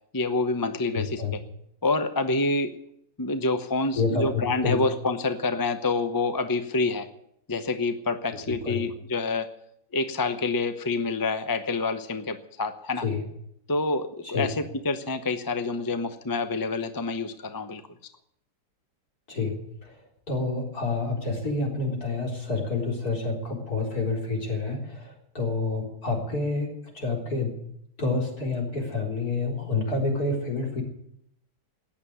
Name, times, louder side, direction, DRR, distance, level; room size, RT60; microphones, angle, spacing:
voice 1, 0.1-1.4 1.8-2.7 3.2-7.1 7.5-9.5 9.9-13.0 13.7-17.8, left 3 dB, 20° left, 9 dB, 0.6 m, -27 dB
voice 2, 0.9-1.3 3.9-4.8 8.5-8.8 13.0-13.2 14.2-14.5 19.3-20.0 20.3-30.8, left 3 dB, 60° left, 0 dB, 4.5 m, -28 dB
14.5 x 9.8 x 9.6 m, 0.74 s
omnidirectional pair, 1.8 m